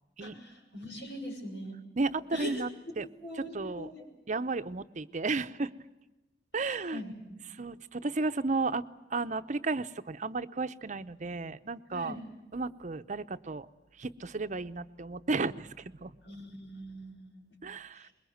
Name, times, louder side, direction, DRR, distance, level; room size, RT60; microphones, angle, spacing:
voice 1, 0.2-1.8 2.3-2.6 3.2-4.0 6.6-7.4 11.9-12.2 16.2-17.5 17.9-18.1, equal, 85° left, 2 dB, 6.6 m, -42 dB
voice 2, 2.0-2.7 3.0-3.1 3.5-3.9 4.3-5.7 6.5-7.0 7.5-12.2 12.5-13.7 14.0-16.1 17.6-18.1, right 3 dB, 45° right, 11 dB, 0.7 m, -33 dB
23.0 x 21.5 x 7.9 m, 1.1 s
head